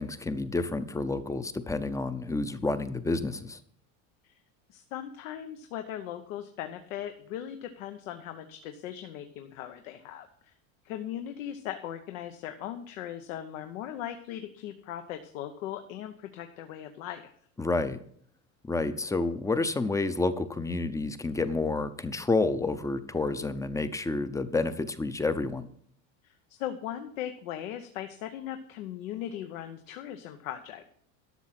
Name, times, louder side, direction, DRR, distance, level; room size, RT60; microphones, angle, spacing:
voice 1, 0.0-3.6 17.6-18.0 18.6-25.7, left 3 dB, 10° left, 12 dB, 0.5 m, -29 dB
voice 2, 4.7-10.5 10.8-17.3 26.2-30.9, left 11 dB, 90° left, 7 dB, 1.0 m, -39 dB
12.0 x 6.4 x 5.9 m, 0.62 s
supercardioid pair, 130°, 39 cm